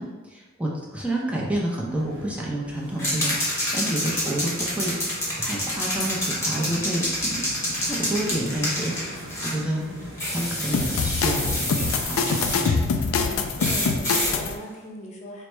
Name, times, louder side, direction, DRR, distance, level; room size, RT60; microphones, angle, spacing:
voice 1, 0.0-7.5 7.8-9.8 10.3-12.8, right 1 dB, 5° right, -4 dB, 0.5 m, -29 dB
sound 1, 1.9-14.6, equal, 65° right, 0.7 m, -42 dB
sound 2, 3.0-9.6 10.2-12.7 13.6-14.3, left 1 dB, 15° left, 1.0 m, -28 dB
sound 3, 10.7-14.5, left 5 dB, 90° left, 0.3 m, -25 dB
voice 2, 13.0-15.5, equal, 35° left, -2 dB, 0.7 m, -39 dB
4.5 x 2.1 x 3.2 m, 1.2 s
head